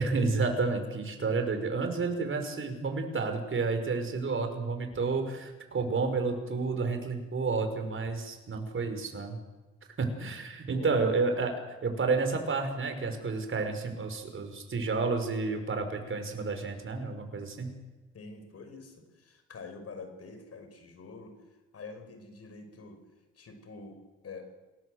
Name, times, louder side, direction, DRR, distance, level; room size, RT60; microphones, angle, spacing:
voice 1, 0.0-9.4 10.0-11.6 11.8-17.7, right 4 dB, 40° right, 6 dB, 5.4 m, -30 dB
voice 2, 18.1-21.4 21.7-23.0 23.4-24.5, left 4 dB, 50° left, 7 dB, 5.7 m, -46 dB
28.0 x 18.5 x 8.0 m, 1.1 s
cardioid pair, 90°, 30 cm